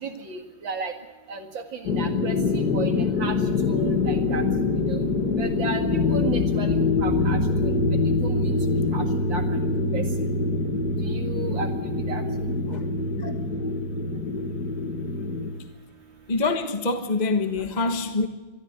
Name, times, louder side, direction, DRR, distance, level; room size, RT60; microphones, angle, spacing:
voice 1, 0.0-0.9 1.3-1.4 1.9-2.3 2.7-2.9 3.2-3.3 3.6-4.4 4.9-5.0 5.4-6.7 7.0-7.8 8.2-8.5 8.9-9.0 9.3-9.4 9.9-10.0 11.1-11.7 12.1-12.2, right 3 dB, 70° right, 2.6 m, -33 dB
sound 1, 1.8-15.5, left 3 dB, 50° left, 2.6 m, -24 dB
voice 2, 16.3-18.3, left 3 dB, 25° left, 1.2 m, -25 dB
22.5 x 14.5 x 9.5 m
omnidirectional pair, 2.2 m